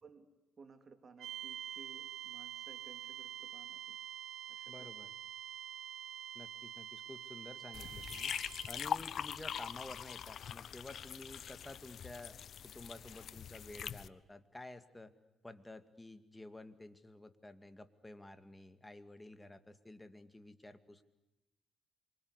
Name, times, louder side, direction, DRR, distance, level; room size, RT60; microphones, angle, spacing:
voice 1, 0.6-4.0 4.5-4.9, right 4 dB, 40° right, 8 dB, 3.0 m, -59 dB
sound 1, 1.2-8.9, right 10 dB, 75° right, 2.6 m, -47 dB
voice 2, 4.7-5.1 6.3-8.3 8.7-15.1 15.4-21.0, left 2 dB, 15° left, 10 dB, 2.2 m, -52 dB
sound 2, 7.7-14.1, left 8 dB, 60° left, 0.9 m, -42 dB
27.0 x 25.0 x 8.2 m, 0.93 s
cardioid pair, 90°, 0 cm